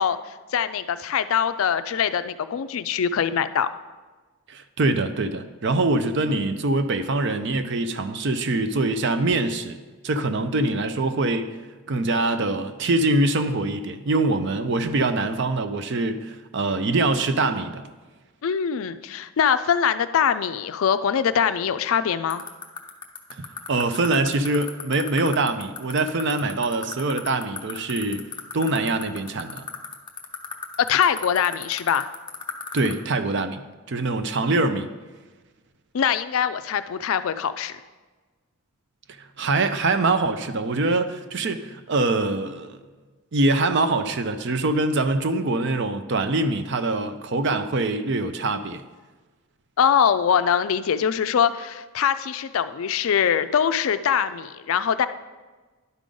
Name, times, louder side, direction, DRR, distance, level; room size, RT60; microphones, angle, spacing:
voice 1, 0.0-3.7 18.4-22.4 30.8-32.1 35.9-37.7 49.8-55.1, left 8 dB, 65° left, 12 dB, 0.4 m, -23 dB
voice 2, 4.5-11.6 11.9-17.8 23.4-28.2 28.5-29.6 32.7-33.6 33.9-34.9 39.4-42.8 43.3-48.8, right 2 dB, 55° right, 10 dB, 0.5 m, -24 dB
sound 1, 22.3-32.9, left 7 dB, 20° left, 0.6 m, -32 dB
11.0 x 5.0 x 3.8 m, 1.3 s
head